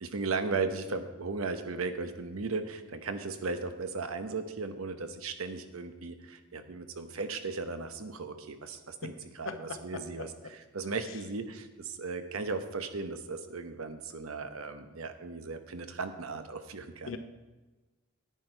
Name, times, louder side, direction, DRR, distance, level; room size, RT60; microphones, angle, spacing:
voice 1, 0.0-17.1, right 4 dB, 85° right, 8 dB, 0.9 m, -36 dB
voice 2, 9.4-10.5 17.0-17.2, left 4 dB, 70° left, 8 dB, 0.9 m, -40 dB
10.0 x 9.5 x 4.5 m, 1.2 s
head